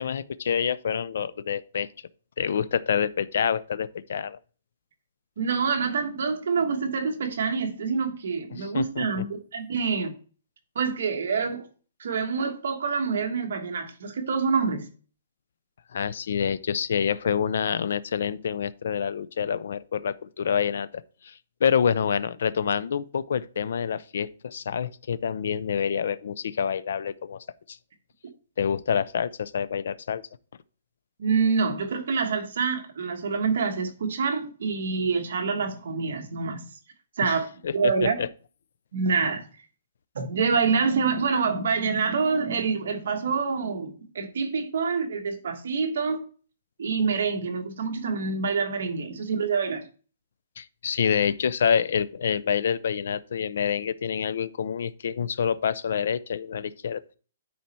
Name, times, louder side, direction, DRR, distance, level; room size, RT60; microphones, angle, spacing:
voice 1, 0.0-1.9 2.4-4.4 8.5-9.2 15.9-27.8 28.6-30.2 37.2-37.4 37.6-38.3 50.6-57.0, left 7 dB, 55° left, 0.4 m, -27 dB
voice 2, 5.4-10.2 10.7-11.7 12.0-14.9 31.2-36.6 37.2-38.2 38.9-39.4 40.1-46.2 46.8-49.8, right 5 dB, 55° right, 1.4 m, -26 dB
9.4 x 4.3 x 4.3 m
hypercardioid pair, 180°, 0 cm